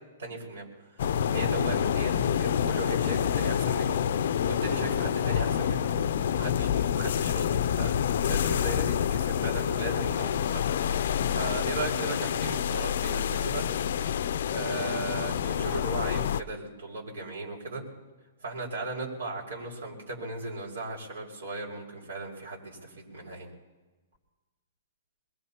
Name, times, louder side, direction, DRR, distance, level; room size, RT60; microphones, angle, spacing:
voice 1, 0.2-0.7 0.9-7.9 8.3-13.6 14.5-17.8 18.4-23.5, right 2 dB, 85° right, -1 dB, 5.6 m, -37 dB
sound 1, 1.0-16.4, left 9 dB, 65° left, 0.4 m, -27 dB
23.0 x 21.5 x 2.9 m, 1.2 s
hypercardioid pair, 150°, 0 cm